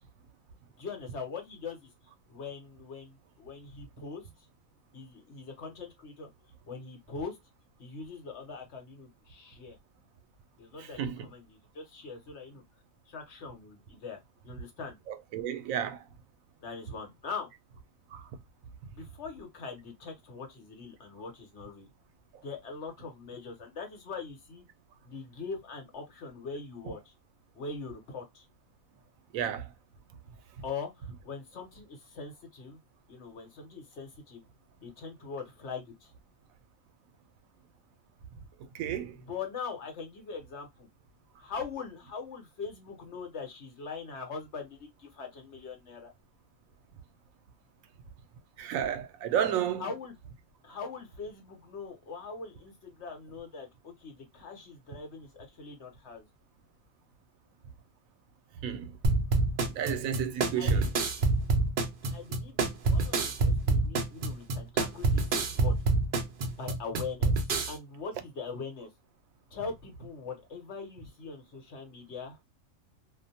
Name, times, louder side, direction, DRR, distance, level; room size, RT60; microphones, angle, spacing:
voice 1, 0.8-1.9 2.3-4.3 4.9-6.3 6.7-7.4 7.8-9.8 10.6-12.6 13.1-15.0 16.6-17.5 18.9-21.9 22.4-24.6 25.0-27.1 27.5-28.5 30.6-32.8 33.1-34.4 34.8-36.1 39.3-40.9 41.4-46.1 49.8-50.1 50.6-56.3 60.6-60.7 62.1-65.7 66.6-67.3 67.7-68.9 69.5-72.4, left 5 dB, 60° left, 1.1 m, -42 dB
voice 2, 10.8-11.3 15.1-16.0 18.1-18.3 29.3-29.7 38.7-39.2 48.6-49.9 58.6-59.0 59.7-60.9, right 9 dB, 85° right, 1.0 m, -32 dB
sound 1, 59.0-67.7, right 3 dB, 60° right, 0.6 m, -27 dB
2.5 x 2.1 x 2.7 m
omnidirectional pair, 1.4 m